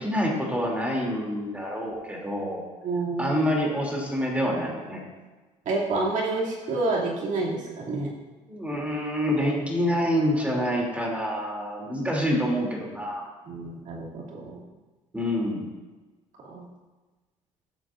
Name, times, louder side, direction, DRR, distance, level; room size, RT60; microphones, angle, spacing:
voice 1, 0.0-2.6 3.2-5.0 8.5-13.3 15.1-15.6, equal, 10° right, -2 dB, 2.8 m, -27 dB
voice 2, 2.8-3.4 5.7-8.1 13.4-14.6 16.5-16.7, right 3 dB, 65° right, -4 dB, 2.6 m, -28 dB
13.0 x 7.4 x 2.5 m, 1.2 s
cardioid pair, 85°, 14 cm